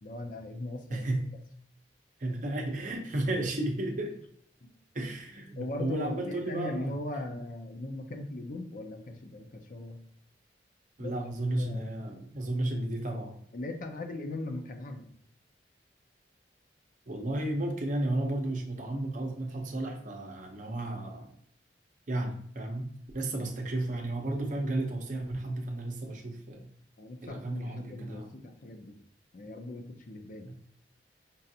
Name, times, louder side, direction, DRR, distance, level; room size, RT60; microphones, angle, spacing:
voice 1, 0.0-1.1 5.6-10.0 11.0-11.1 11.6-11.9 13.5-15.1 27.0-29.0 29.3-30.5, left 2 dB, 50° left, 4 dB, 0.5 m, -39 dB
voice 2, 0.9-1.2 2.2-4.1 4.9-7.0 11.0-13.4 17.1-21.3 22.1-22.9 23.1-26.7 27.2-28.3 30.4-30.6, right 1 dB, 45° right, 2 dB, 0.7 m, -33 dB
5.3 x 2.5 x 2.7 m, 0.65 s
head